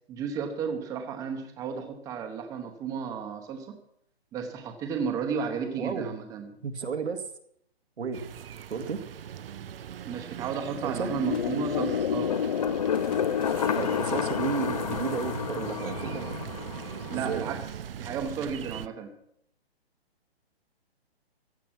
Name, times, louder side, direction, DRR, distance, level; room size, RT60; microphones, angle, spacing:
voice 1, 0.1-3.8 4.3-6.6 10.0-12.3 17.1-19.1, right 6 dB, 10° right, 5 dB, 1.0 m, -33 dB
voice 2, 5.8-6.1 6.6-7.2 8.0-8.3 8.7-9.0 10.8-11.1 13.8-16.4 17.1-17.5, right 5 dB, 85° right, 6 dB, 2.1 m, -32 dB
sound 1, 8.1-18.9, right 9 dB, 60° right, 0.7 m, -40 dB
sound 2, 11.0-17.5, left 8 dB, 40° left, 0.5 m, -30 dB
sound 3, 11.0-15.7 16.1-16.2 16.5-16.9 17.8-19.3, left 6 dB, 15° left, 1.1 m, -52 dB
15.5 x 9.7 x 5.9 m, 0.71 s
hypercardioid pair, 155°, 32 cm